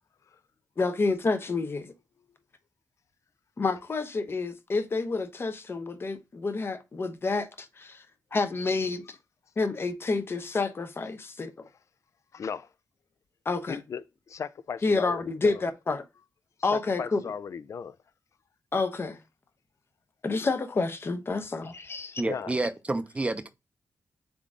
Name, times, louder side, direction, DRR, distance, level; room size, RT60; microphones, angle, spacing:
voice 1, 0.8-1.9 3.6-8.0 8.3-9.2 9.6-11.6 13.4-13.8 14.8-16.0 16.6-17.2 18.7-19.2 20.2-22.2, left 3 dB, 40° left, 0.8 m, -29 dB
voice 2, 12.3-12.7 13.7-15.6 16.7-18.0 22.2-22.5, left 6 dB, 60° left, 0.4 m, -36 dB
voice 3, 22.2-23.5, right 2 dB, 20° right, 0.6 m, -29 dB
3.8 x 3.6 x 3.7 m
cardioid pair, 80°, 6 cm